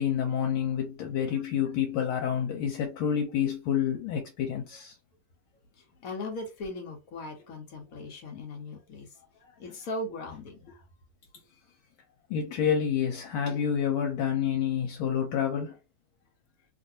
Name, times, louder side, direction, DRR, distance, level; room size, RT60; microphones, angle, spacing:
voice 1, 0.0-4.9 12.3-15.8, left 8 dB, 80° left, 1.5 m, -28 dB
voice 2, 5.8-10.8, left 2 dB, 60° left, 1.0 m, -39 dB
3.2 x 2.5 x 2.6 m
omnidirectional pair, 2.3 m